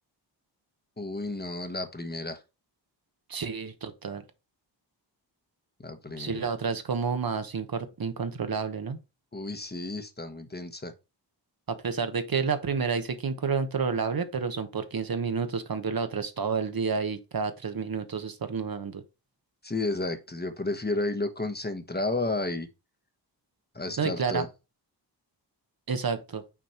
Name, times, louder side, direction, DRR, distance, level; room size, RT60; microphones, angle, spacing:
voice 1, 1.0-2.4 5.8-6.5 9.3-10.9 19.6-22.7 23.7-24.5, left 2 dB, 25° left, 1.1 m, -32 dB
voice 2, 3.3-4.2 6.2-9.0 11.7-19.0 24.0-24.5 25.9-26.4, right 5 dB, 55° right, 1.1 m, -30 dB
6.1 x 4.2 x 4.3 m
cardioid pair, 50°, 43 cm